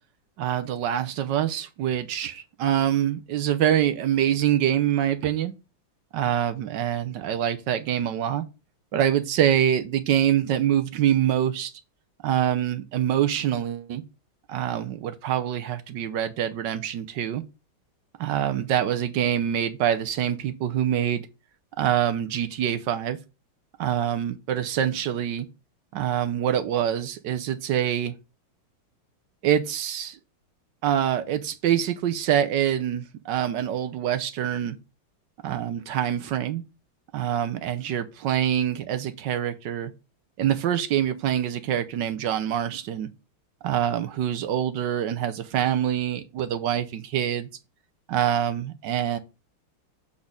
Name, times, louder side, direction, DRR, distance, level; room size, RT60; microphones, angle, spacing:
voice 1, 0.4-5.5 6.1-8.4 8.9-11.7 12.2-14.0 14.5-17.4 18.2-21.3 21.8-23.2 23.8-25.5 25.9-28.1 29.4-30.2 30.8-34.8 35.4-36.6 37.1-39.9 40.4-43.1 43.6-47.5 48.1-49.2, right 10 dB, 70° right, 1.2 m, -25 dB
7.2 x 4.2 x 5.0 m
omnidirectional pair, 2.3 m